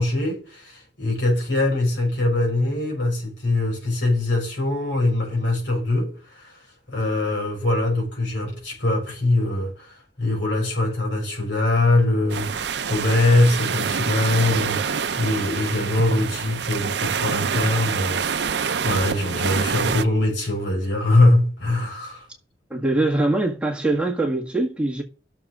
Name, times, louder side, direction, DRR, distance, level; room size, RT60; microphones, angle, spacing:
voice 1, 0.0-6.5 6.9-9.9 10.2-22.2, left 2 dB, 90° left, 5.5 m, -22 dB
sound 1, 12.3-20.0, right 6 dB, 70° right, 0.6 m, -26 dB
voice 2, 22.7-25.0, right 2 dB, 5° right, 1.7 m, -22 dB
14.0 x 6.8 x 3.7 m
head